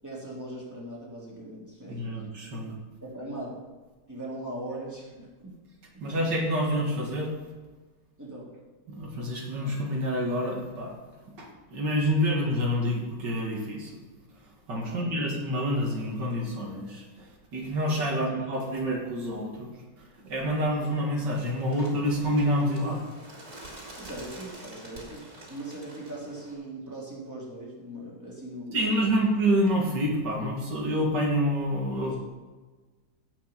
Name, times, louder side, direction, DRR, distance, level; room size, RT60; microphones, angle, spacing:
voice 1, 0.0-2.0 3.0-3.6 4.1-5.6 5.9-6.0 8.2-8.5 14.9-15.4 18.1-18.4 24.0-28.8 32.0-32.2, right 1 dB, 10° right, -6 dB, 3.4 m, -40 dB
voice 2, 1.9-2.7 6.0-7.3 8.9-10.9 11.4-13.9 14.7-19.7 20.2-23.0 28.7-32.1, equal, 75° right, -1 dB, 2.6 m, -27 dB
Bird, 21.2-26.5, right 1 dB, 55° right, 3.5 m, -47 dB
16.5 x 5.9 x 5.8 m, 1.3 s
omnidirectional pair, 1.9 m